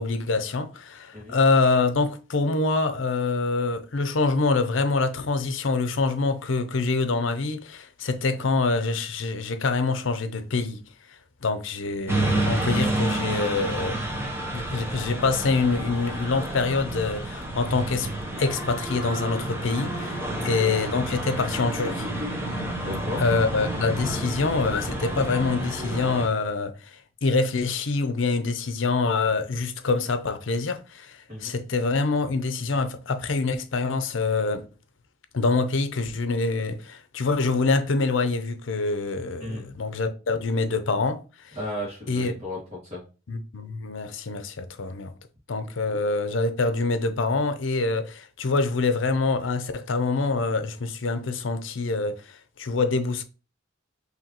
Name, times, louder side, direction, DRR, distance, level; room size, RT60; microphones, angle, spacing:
voice 1, 0.0-10.8 11.1-14.0 14.5-18.1 18.4-20.2 20.4-22.1 23.2-34.7 35.3-41.6 42.1-42.3 43.3-45.1 45.5-53.2, left 3 dB, 70° left, 0.6 m, -25 dB
sound 1, 12.1-26.3, right 1 dB, 10° right, 0.8 m, -30 dB
voice 2, 22.8-23.2 31.3-31.5 39.4-39.6 41.5-43.0, left 1 dB, 30° right, 2.0 m, -34 dB
4.9 x 3.2 x 2.9 m
head